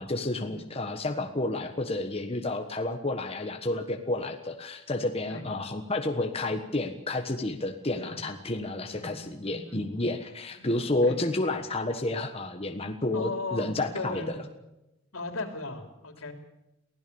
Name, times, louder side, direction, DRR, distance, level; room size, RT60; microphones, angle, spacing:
voice 1, 0.0-14.3, left 2 dB, 30° left, 5 dB, 1.4 m, -30 dB
voice 2, 8.9-10.1 10.6-10.7 11.0-11.2 13.1-13.7 13.9-14.6 15.1-16.3, left 3 dB, 85° left, 5 dB, 3.5 m, -37 dB
23.5 x 16.5 x 7.1 m, 0.92 s
head